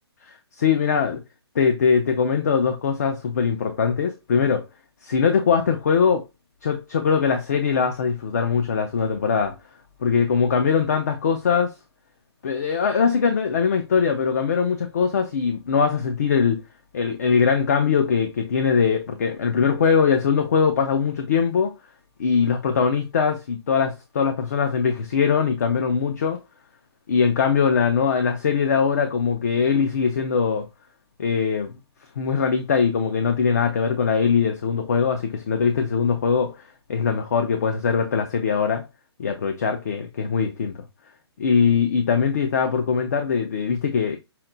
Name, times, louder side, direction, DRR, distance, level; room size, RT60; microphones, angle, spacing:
voice 1, 0.3-1.2 1.6-4.7 5.0-6.3 6.6-9.5 10.0-11.7 12.4-16.6 16.9-21.7 22.2-26.4 27.1-30.7 31.2-31.7 32.2-38.8 39.2-40.8 41.4-44.2, left 6 dB, 40° left, 0.5 m, -21 dB
5.7 x 2.2 x 3.8 m
hypercardioid pair, 170°, 14 cm